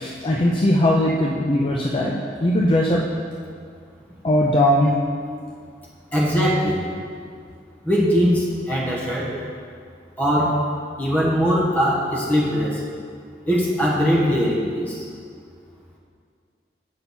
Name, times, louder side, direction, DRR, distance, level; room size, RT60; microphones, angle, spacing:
voice 1, 0.0-3.1 4.2-5.0, left 1 dB, 30° left, -2 dB, 0.5 m, -19 dB
voice 2, 6.1-6.8 7.8-9.4 10.2-10.7 11.0-12.8 13.4-15.0, equal, 10° left, -5 dB, 1.3 m, -21 dB
8.4 x 5.6 x 4.3 m, 2.2 s
head